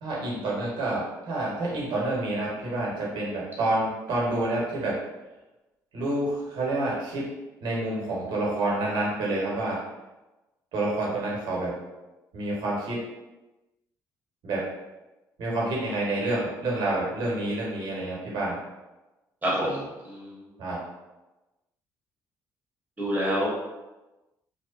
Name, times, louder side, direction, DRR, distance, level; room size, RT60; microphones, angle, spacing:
voice 1, 0.0-5.0 5.9-7.3 7.6-9.8 10.7-11.8 12.3-13.0 14.4-14.6 15.4-18.6 20.6-20.8, right 2 dB, 70° right, -4 dB, 1.0 m, -28 dB
voice 2, 19.4-20.4 23.0-23.5, equal, 20° right, -6 dB, 1.1 m, -27 dB
2.7 x 2.1 x 2.4 m, 1.1 s
supercardioid pair, 75°, 8 cm